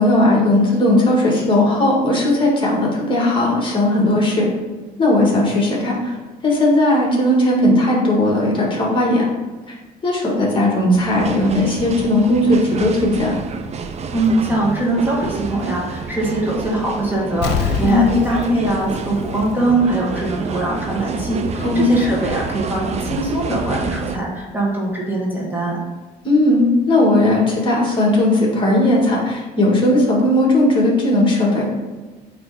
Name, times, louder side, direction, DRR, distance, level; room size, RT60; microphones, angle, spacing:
voice 1, 0.0-4.5 5.0-6.1 6.4-9.3 10.0-13.3 17.8-18.2 21.6-22.0 26.2-31.7, left 1 dB, 30° left, -2 dB, 2.1 m, -17 dB
sound 1, 10.9-24.2, right 5 dB, 40° right, 0.6 m, -29 dB
voice 2, 14.1-25.8, right 2 dB, 10° right, -4 dB, 1.9 m, -21 dB
Explosion, 17.4-20.0 20.4-20.5, left 7 dB, 80° left, 0.8 m, -25 dB
8.8 x 3.4 x 4.3 m, 1.3 s
cardioid pair, 110°, 17 cm